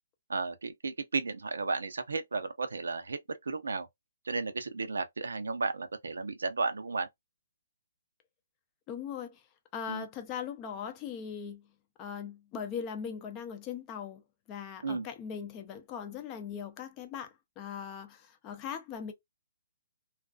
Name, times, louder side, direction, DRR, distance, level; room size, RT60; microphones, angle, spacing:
voice 1, 0.3-3.9 4.2-7.1 9.9-10.1 14.8-15.1, right 4 dB, 90° right, 0.6 m, -34 dB
voice 2, 8.9-9.4 9.7-11.7 12.0-14.2 14.5-19.1, left 7 dB, 20° left, 0.5 m, -40 dB
2.4 x 2.3 x 2.3 m
hypercardioid pair, 155°, 0 cm